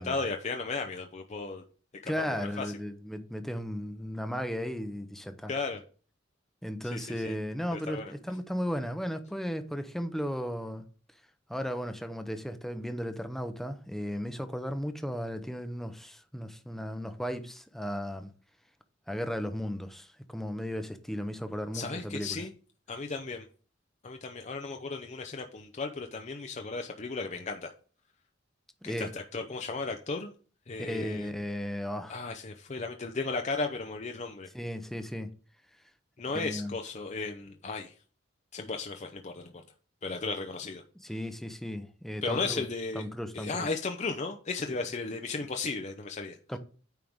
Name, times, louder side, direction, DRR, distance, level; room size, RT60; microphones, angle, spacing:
voice 1, 0.0-1.6 2.0-2.7 5.5-5.8 6.9-7.3 7.7-8.1 21.7-22.5 22.9-23.5 24.0-27.7 28.8-30.3 30.7-31.3 32.1-34.5 36.2-38.0 38.5-39.6 40.0-40.8 42.2-43.0 43.3-46.4, left 3 dB, 40° left, 0.6 m, -35 dB
voice 2, 2.1-5.5 6.6-10.8 11.5-18.3 19.1-22.4 28.8-29.1 30.8-32.2 34.5-35.3 36.3-36.7 41.0-42.6 42.9-43.7 46.5-46.6, equal, ahead, 0.7 m, -35 dB
9.0 x 4.6 x 3.6 m
head